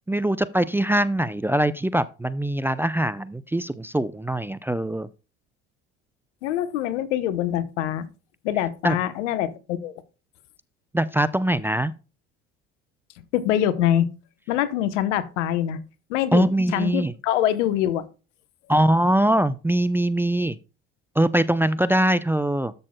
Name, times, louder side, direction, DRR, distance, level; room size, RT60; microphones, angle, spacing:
voice 1, 0.1-5.1 8.8-9.0 10.9-11.9 16.3-17.1 18.7-20.6 21.2-22.7, right 1 dB, 5° right, 0.4 m, -22 dB
voice 2, 6.4-8.1 8.4-9.9 13.3-14.1 14.5-15.8 16.1-18.1, left 11 dB, 80° left, 1.0 m, -24 dB
13.0 x 6.4 x 2.2 m
hypercardioid pair, 70°, 35 cm